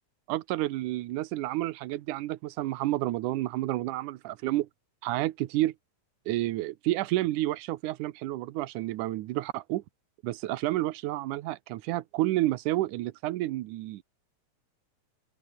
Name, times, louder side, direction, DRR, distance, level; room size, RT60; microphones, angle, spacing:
voice 1, 0.3-4.7 5.0-5.7 6.3-9.8 10.2-14.0, right 16 dB, 90° right, 2.3 m, -30 dB
open air
omnidirectional pair, 3.4 m